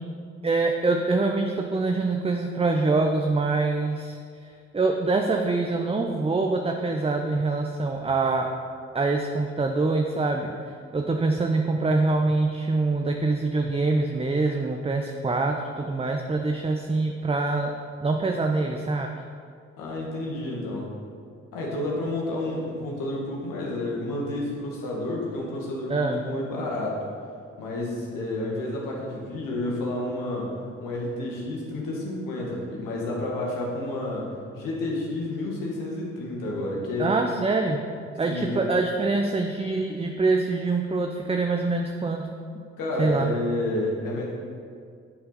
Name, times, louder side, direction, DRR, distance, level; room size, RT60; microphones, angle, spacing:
voice 1, 0.4-4.2 4.7-8.5 8.9-10.5 10.9-17.7 18.0-19.1 25.9-26.2 37.0-37.8 38.2-42.4 43.0-43.3, right 3 dB, 15° right, 3 dB, 0.7 m, -24 dB
voice 2, 19.8-20.9 21.5-27.0 27.6-37.1 38.3-38.7 42.8-44.3, left 1 dB, 75° left, -2 dB, 1.9 m, -30 dB
9.6 x 7.8 x 4.1 m, 2.2 s
hypercardioid pair, 40°, 33 cm